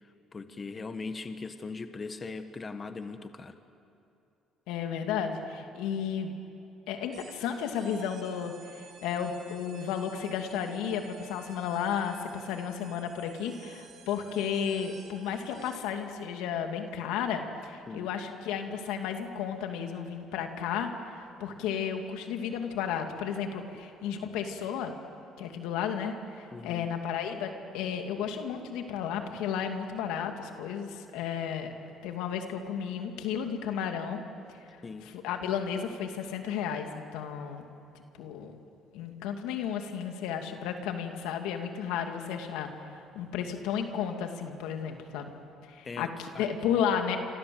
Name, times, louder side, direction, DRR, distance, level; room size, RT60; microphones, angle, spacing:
voice 1, 0.0-3.6 17.9-18.1 26.5-26.9 34.8-35.1 45.8-46.5, left 4 dB, 30° left, 9 dB, 1.4 m, -40 dB
voice 2, 4.7-6.3 6.9-25.0 25.4-31.7 32.0-34.2 34.5-34.8 35.1-37.6 38.2-38.5 38.9-45.4 45.7-47.2, left 7 dB, 90° left, 5 dB, 2.5 m, -33 dB
sound 1, 7.1-16.0, right 6 dB, 55° right, 4.3 m, -54 dB
28.0 x 26.0 x 7.9 m, 2.8 s
cardioid pair, 105°, 0 cm